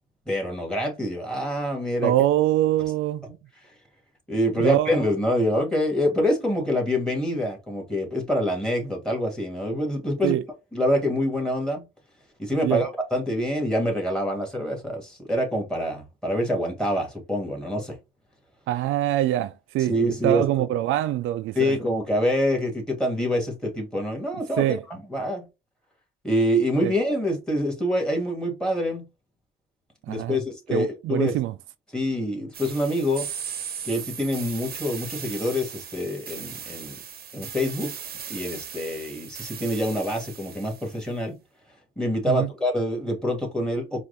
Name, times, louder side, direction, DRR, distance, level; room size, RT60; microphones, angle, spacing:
voice 1, 0.3-2.1 4.3-10.4 10.7-11.9 12.4-18.0 19.9-20.7 21.6-25.5 26.2-29.1 30.1-31.4 31.9-33.3 33.8-37.0 37.3-37.9 38.3-41.4 42.0-44.0, equal, 5° left, 2.2 m, -26 dB
voice 2, 2.0-3.4 4.6-5.0 10.2-10.4 12.6-12.9 18.7-19.9 20.2-21.8 24.6-24.8 26.8-26.9 30.1-30.4 30.7-31.5 42.3-42.5, right 13 dB, 85° right, 0.4 m, -24 dB
sound 1, 32.5-41.0, right 8 dB, 50° right, 0.8 m, -38 dB
4.6 x 2.6 x 4.0 m
cardioid pair, 90°, 20 cm